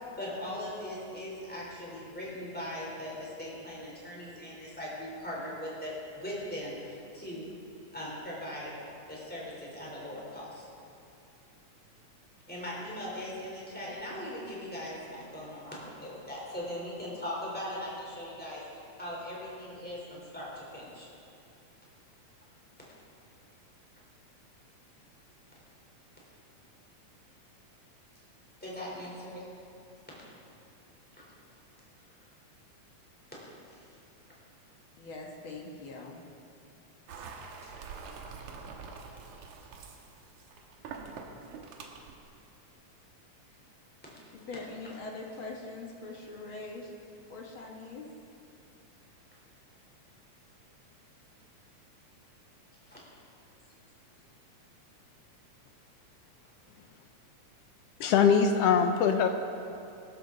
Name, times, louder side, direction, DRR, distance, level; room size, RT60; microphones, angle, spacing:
voice 1, 0.2-7.5 7.9-8.7 9.1-10.6 12.5-18.6 19.0-21.1 28.6-29.4 31.2-31.3 37.6-37.8 52.9-53.0, left 1 dB, 5° left, -5 dB, 3.6 m, -39 dB
voice 2, 35.0-36.2 44.3-46.9 47.3-48.1, left 3 dB, 50° left, -1 dB, 1.8 m, -42 dB
sound 1, 37.1-42.2, right 5 dB, 75° right, 2.4 m, -45 dB
voice 3, 58.0-59.3, left 6 dB, 75° left, 6 dB, 1.4 m, -22 dB
21.0 x 12.5 x 4.0 m, 2.6 s
omnidirectional pair, 3.5 m